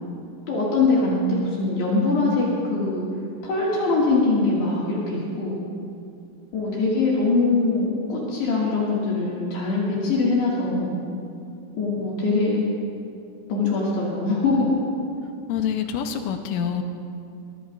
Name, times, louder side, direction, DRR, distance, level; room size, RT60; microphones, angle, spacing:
voice 1, 0.5-3.1 3.4-5.6 6.5-10.9 11.7-12.6 13.5-14.7, left 3 dB, 65° left, -6 dB, 3.9 m, -22 dB
voice 2, 6.5-7.0 15.5-16.8, left 8 dB, 85° left, 5 dB, 3.3 m, -27 dB
22.5 x 19.5 x 2.5 m, 2.5 s
omnidirectional pair, 5.7 m